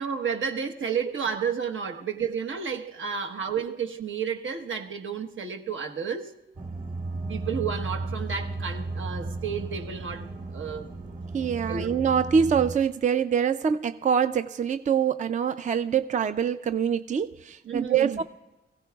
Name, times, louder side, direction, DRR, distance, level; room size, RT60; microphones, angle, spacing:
voice 1, 0.0-6.3 7.3-10.9 11.7-11.9 17.6-18.2, right 6 dB, 80° right, 1.1 m, -31 dB
sound 1, 6.6-12.8, right 2 dB, 60° right, 2.4 m, -34 dB
voice 2, 11.3-18.2, right 7 dB, 40° right, 0.4 m, -25 dB
24.0 x 16.5 x 2.3 m
wide cardioid pair, 145°, 20 cm